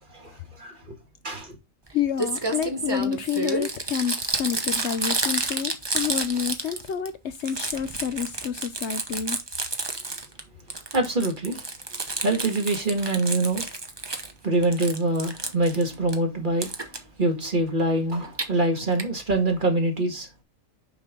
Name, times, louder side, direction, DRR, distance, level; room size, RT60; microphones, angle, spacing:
voice 1, 0.1-1.0 1.2-1.6 10.9-11.6 12.2-13.7 14.4-16.7 17.2-20.3, right 2 dB, 40° right, 2.0 m, -25 dB
voice 2, 1.9-9.4, left 8 dB, 65° left, 0.9 m, -29 dB
Crumpling crinkling, 1.9-2.0 2.2-7.1 7.3-10.4 10.7-14.3 14.6-16.2 16.6-17.0 18.1-18.5 19.0-19.1 19.3-19.4 19.6-19.7, right 3 dB, 20° right, 1.0 m, -30 dB
6.1 x 5.4 x 3.7 m
omnidirectional pair, 1.3 m